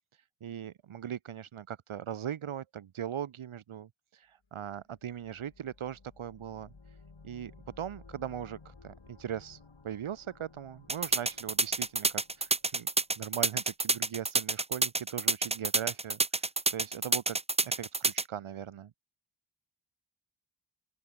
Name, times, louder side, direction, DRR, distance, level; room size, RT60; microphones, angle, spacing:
voice 1, 0.1-7.0 7.2-7.5 7.8-12.9 13.2-17.4 17.6-18.9, right 9 dB, 75° right, 0.8 m, -40 dB
sound 1, 4.7-13.4, left 4 dB, 65° left, 5.2 m, -57 dB
sound 2, 10.9-18.2, right 3 dB, 15° right, 0.5 m, -28 dB
open air
wide cardioid pair, 45°, 49 cm